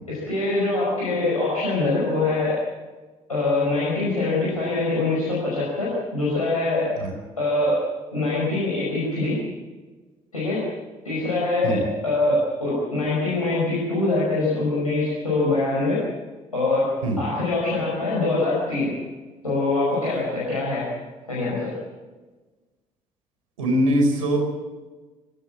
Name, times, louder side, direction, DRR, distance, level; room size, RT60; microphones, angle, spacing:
voice 1, 0.1-2.6 3.3-6.9 7.4-7.8 8.1-9.4 10.3-10.6 11.0-16.0 16.5-18.9 19.4-20.9 21.3-21.7, left 2 dB, 85° left, -7 dB, 5.3 m, -23 dB
voice 2, 23.6-24.4, right 1 dB, 75° right, 3 dB, 4.5 m, -21 dB
23.0 x 16.5 x 7.4 m, 1.3 s
figure-of-eight pair, 45°, 18 cm